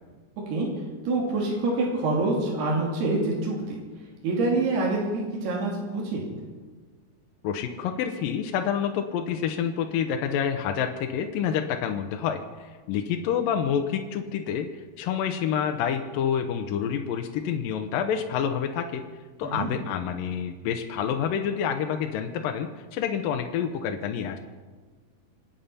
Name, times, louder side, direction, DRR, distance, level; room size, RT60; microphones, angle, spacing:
voice 1, 1.1-3.8 4.2-6.2 19.4-19.7, right 2 dB, 75° right, -3 dB, 4.7 m, -26 dB
voice 2, 7.4-14.7 15.0-19.0 19.4-24.4, left 8 dB, 75° left, 5 dB, 2.4 m, -28 dB
27.0 x 9.1 x 5.7 m, 1.4 s
omnidirectional pair, 4.7 m